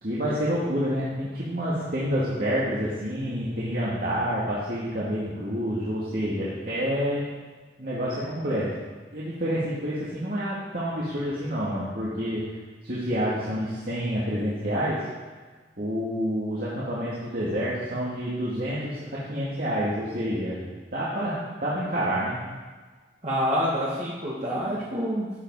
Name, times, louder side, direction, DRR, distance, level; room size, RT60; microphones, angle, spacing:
voice 1, 0.0-7.2 7.8-12.4 12.8-15.1 15.8-20.6 20.9-21.4 21.6-22.4, equal, 55° right, -9 dB, 2.3 m, -28 dB
voice 2, 23.2-25.4, equal, 40° right, -7 dB, 2.0 m, -27 dB
12.5 x 8.2 x 4.8 m, 1.4 s
head